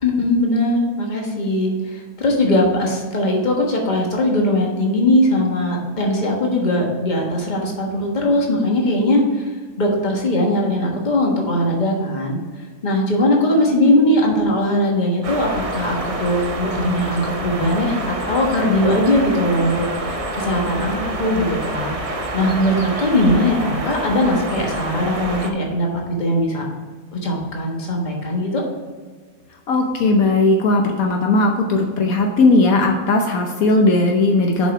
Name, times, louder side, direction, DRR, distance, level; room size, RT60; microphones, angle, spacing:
voice 1, 0.0-9.4 9.8-12.4 12.8-21.9 22.3-25.9 26.2-26.7 27.1-28.6, left 1 dB, 30° left, -1 dB, 1.5 m, -20 dB
sound 1, 15.2-25.5, right 1 dB, 35° right, 0.5 m, -27 dB
voice 2, 29.7-34.7, left 2 dB, 70° left, 2 dB, 1.2 m, -17 dB
7.2 x 5.5 x 4.5 m, 1.5 s
omnidirectional pair, 1.6 m